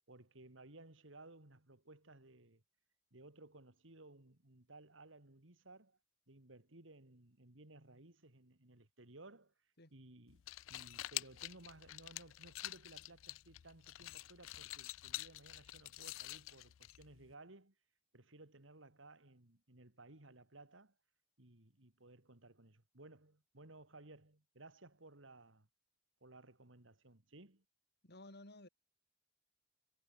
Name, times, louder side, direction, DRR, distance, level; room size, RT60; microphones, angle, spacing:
voice 1, 0.1-2.6 3.1-6.0 6.3-9.5 9.9-10.4 10.7-17.7 18.1-20.9 21.4-25.7 26.2-27.6, right 2 dB, 70° right, 2.6 m, -59 dB
sound 1, 10.3-17.3, left 17 dB, 85° left, 0.4 m, -48 dB
voice 2, 28.0-28.7, left 2 dB, 55° left, 6.5 m, -55 dB
head